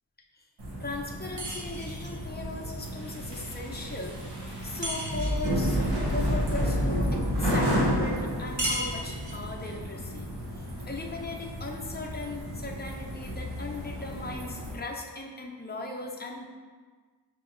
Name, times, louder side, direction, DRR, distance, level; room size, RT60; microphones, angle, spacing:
sound 1, 0.6-14.8, equal, 75° right, 1.0 m, -31 dB
voice 1, 0.8-4.2 4.6-10.3 10.6-16.5, left 3 dB, 25° left, -1 dB, 0.6 m, -38 dB
sound 2, 1.4-2.2 4.8-5.6 8.6-9.5, right 1 dB, 45° right, 0.8 m, -34 dB
6.0 x 2.8 x 2.5 m, 1.5 s
wide cardioid pair, 60°, 42 cm